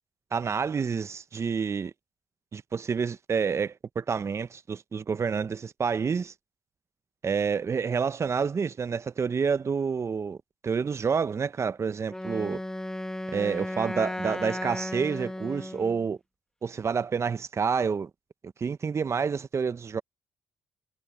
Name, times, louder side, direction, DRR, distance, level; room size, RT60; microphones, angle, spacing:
voice 1, 0.3-1.9 2.5-6.3 7.2-10.4 10.6-12.6 13.3-16.2 16.6-18.1 18.6-20.0, right 6 dB, 40° right, 1.0 m, -28 dB
Wind instrument woodwind instrument, 12.1-16.1, left 1 dB, 10° left, 1.5 m, -35 dB
hypercardioid pair, 55°, 7 cm